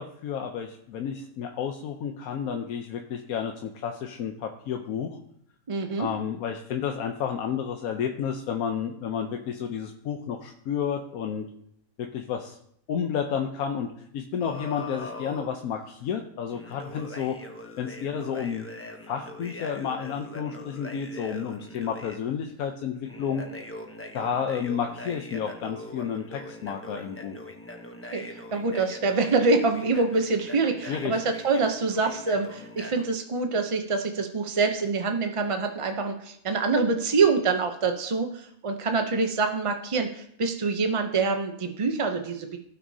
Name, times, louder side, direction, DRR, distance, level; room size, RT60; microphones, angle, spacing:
voice 1, 0.0-5.2 6.0-11.5 12.0-12.6 12.9-17.4 17.8-18.7 19.1-23.5 24.1-27.4 30.9-31.2, left 7 dB, 85° left, 4 dB, 1.2 m, -31 dB
voice 2, 5.7-6.1 28.1-42.6, right 4 dB, 45° right, 5 dB, 0.4 m, -25 dB
sound 1, 14.4-15.5 16.5-22.2 23.0-33.0, left 1 dB, 15° left, 0.5 m, -42 dB
16.0 x 6.1 x 2.7 m, 0.69 s
omnidirectional pair, 1.5 m